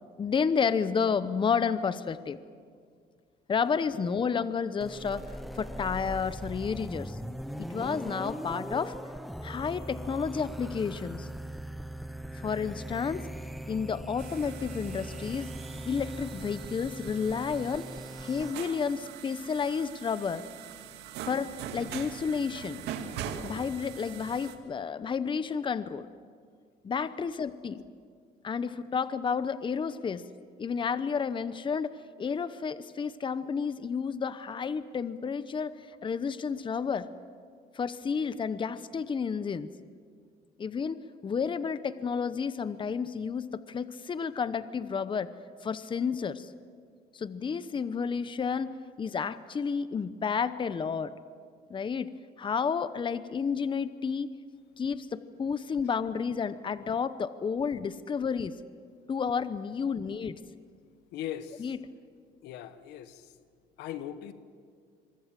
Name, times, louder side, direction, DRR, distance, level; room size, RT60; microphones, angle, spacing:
voice 1, 0.2-2.4 3.5-5.2 5.5-7.2 7.6-9.0 9.4-11.3 12.3-13.3 13.7-15.5 15.9-17.9 18.2-20.4 21.2-22.8 23.4-26.1 26.8-27.8 28.4-30.3 30.6-37.1 37.7-39.7 40.6-45.3 45.6-46.5 47.1-51.1 51.7-52.1 52.4-54.3 54.8-58.6 59.1-60.4 61.6-61.8, left 6 dB, 30° left, 14 dB, 0.9 m, -31 dB
sound 1, 4.8-18.5, right 1 dB, ahead, 1.0 m, -40 dB
sound 2, 14.2-24.6, right 8 dB, 85° right, 2.2 m, -42 dB
voice 2, 61.1-61.7 62.4-63.4 63.8-64.3, left 11 dB, 90° left, 11 dB, 1.4 m, -40 dB
26.0 x 24.0 x 7.7 m, 2.1 s
cardioid pair, 110°, 17 cm